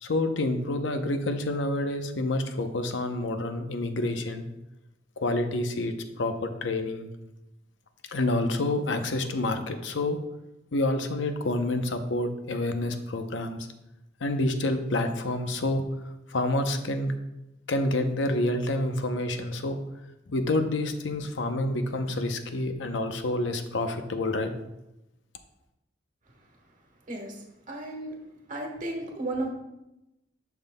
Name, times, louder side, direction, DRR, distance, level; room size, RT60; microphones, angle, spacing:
voice 1, 0.0-4.4 5.2-7.1 8.1-10.2 10.7-13.7 14.2-15.8 16.3-17.2 17.7-19.8 20.3-24.5, left 2 dB, 85° left, 7 dB, 0.7 m, -28 dB
voice 2, 27.1-28.1 28.5-29.5, right 2 dB, 45° right, 1 dB, 1.3 m, -34 dB
10.5 x 5.8 x 2.2 m, 0.92 s
head